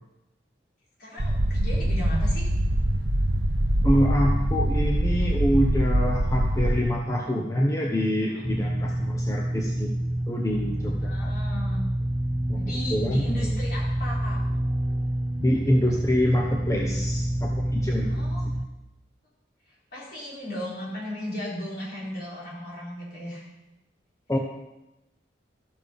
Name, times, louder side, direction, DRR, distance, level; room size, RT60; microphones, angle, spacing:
voice 1, 1.0-2.5 8.2-8.4 11.0-11.9 12.5-14.4 18.1-18.5 19.9-23.5, left 1 dB, 55° left, -6 dB, 4.5 m, -36 dB
sound 1, 1.2-6.8, right 1 dB, 75° right, 0.9 m, -23 dB
voice 2, 3.8-9.9 10.3-11.3 12.5-12.6 12.9-13.6 15.4-18.1 24.3-24.4, equal, 15° left, -1 dB, 0.9 m, -26 dB
sound 2, 8.4-18.7, right 1 dB, 5° right, 0.5 m, -28 dB
13.0 x 6.9 x 5.3 m, 0.96 s
head